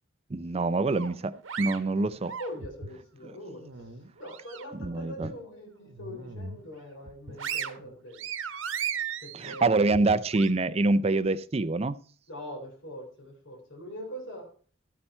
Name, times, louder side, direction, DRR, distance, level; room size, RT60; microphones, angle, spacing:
voice 1, 0.3-1.3 1.6-2.3 3.2-3.3 4.8-5.3 9.4-12.0, right 3 dB, 30° right, 0.4 m, -25 dB
sound 1, 0.9-3.0 3.4-4.9 5.2-5.4 5.8-6.6 7.0-10.5, right 7 dB, 75° right, 1.1 m, -37 dB
voice 2, 2.4-8.2 9.2-10.1 12.3-14.5, equal, 70° left, 3.9 m, -42 dB
13.0 x 8.8 x 4.3 m
head